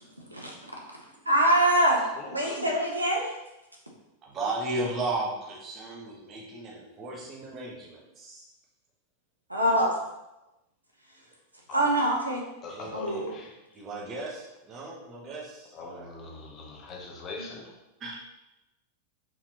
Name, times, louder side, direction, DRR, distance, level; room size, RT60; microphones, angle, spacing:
voice 1, 1.3-2.0 2.3-3.3 9.5-9.9 11.7-12.4 12.9-13.3, right 1 dB, 85° right, -1 dB, 0.8 m, -24 dB
voice 2, 2.1-2.6 11.7-12.1 12.6-13.8 15.7-17.7, left 3 dB, 30° left, 0 dB, 1.0 m, -42 dB
voice 3, 4.2-8.4 12.7-13.2 13.7-16.1 18.0-18.2, right 2 dB, 30° right, -3 dB, 1.2 m, -35 dB
4.5 x 3.7 x 2.9 m, 0.94 s
figure-of-eight pair, 90°, 0 cm